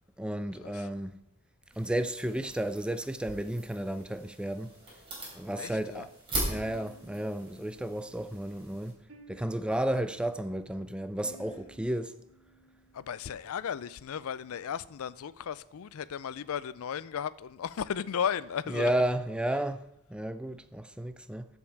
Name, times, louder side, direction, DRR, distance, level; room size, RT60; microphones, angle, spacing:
voice 1, 0.2-1.2 1.8-4.7 5.4-6.1 6.5-8.9 9.3-12.1 18.7-21.5, right 1 dB, 5° right, 0.4 m, -32 dB
sound 1, 1.7-8.9, right 1 dB, 25° right, 3.8 m, -41 dB
voice 2, 5.6-6.1 12.9-18.9, left 8 dB, 65° left, 0.4 m, -35 dB
sound 2, 6.5-13.6, right 1 dB, 65° right, 2.9 m, -58 dB
14.0 x 5.4 x 4.6 m
head